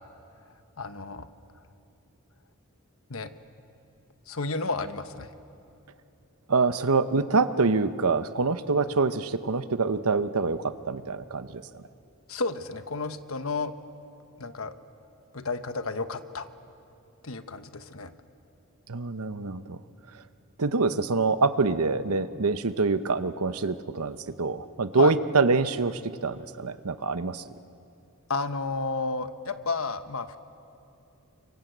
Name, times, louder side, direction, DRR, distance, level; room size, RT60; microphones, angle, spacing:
voice 1, 0.8-1.3 3.1-3.3 4.3-5.3 12.3-13.7 14.4-14.7 15.3-16.5 17.2-18.1 24.9-25.1 28.3-30.4, left 3 dB, 65° left, 9 dB, 1.2 m, -32 dB
voice 2, 6.5-11.8 18.9-19.8 20.6-27.4, right 4 dB, 80° right, 12 dB, 0.9 m, -25 dB
29.5 x 25.5 x 8.1 m, 2.7 s
head